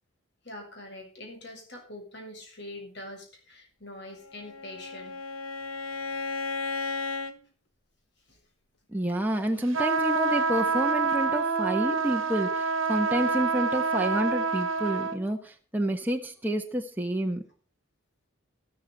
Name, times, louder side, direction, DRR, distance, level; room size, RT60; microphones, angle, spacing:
voice 1, 0.4-5.2 8.3-8.4, left 1 dB, 55° left, 2 dB, 7.3 m, -44 dB
Bowed string instrument, 4.2-7.4, left 4 dB, 90° left, 1.3 m, -34 dB
voice 2, 8.9-17.4, right 1 dB, 10° right, 2 dB, 1.3 m, -29 dB
sound 1, 9.7-15.2, right 4 dB, 70° right, 1.3 m, -27 dB
14.0 x 13.5 x 4.1 m, 0.40 s
head